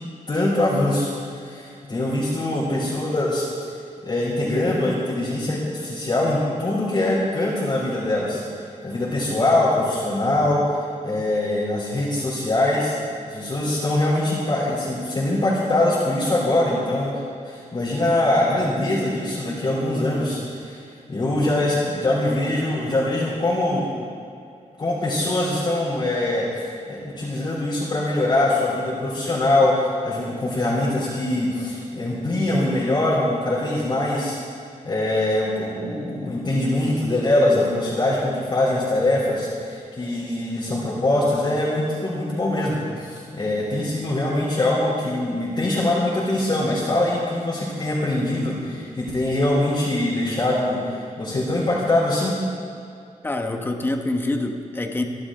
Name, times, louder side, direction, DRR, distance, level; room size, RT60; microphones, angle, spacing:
voice 1, 0.3-3.5 4.0-8.4 8.8-10.6 11.0-12.9 13.3-17.1 17.4-20.8 21.1-23.9 24.8-34.4 34.8-52.4, left 1 dB, 35° left, -10 dB, 3.5 m, -23 dB
voice 2, 53.2-55.0, left 2 dB, 15° left, 4 dB, 1.1 m, -25 dB
26.0 x 11.5 x 3.8 m, 2.4 s
wide cardioid pair, 180°, 14 cm